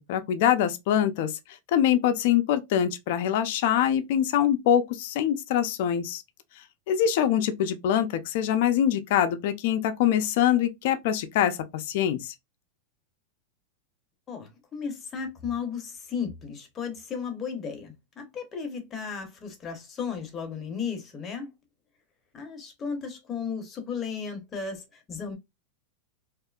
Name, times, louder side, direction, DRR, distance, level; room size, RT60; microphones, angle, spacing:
voice 1, 0.0-1.4 1.7-6.2 6.9-12.3, left 10 dB, 60° left, 0.4 m, -24 dB
voice 2, 14.3-21.5 22.3-25.4, left 6 dB, 25° left, 0.8 m, -35 dB
2.7 x 2.4 x 2.3 m
supercardioid pair, 150°, 0 cm